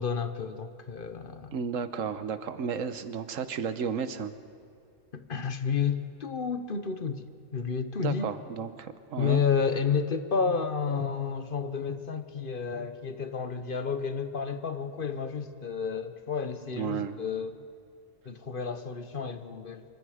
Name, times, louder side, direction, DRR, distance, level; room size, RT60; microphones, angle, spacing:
voice 1, 0.0-1.5 5.1-7.3 7.5-8.3 9.2-17.6 18.3-19.8, left 6 dB, 45° left, 10 dB, 1.0 m, -31 dB
voice 2, 1.5-4.3 8.0-9.4 16.7-17.2, right 6 dB, 85° right, 12 dB, 1.3 m, -33 dB
26.5 x 24.0 x 5.0 m, 2.4 s
omnidirectional pair, 1.3 m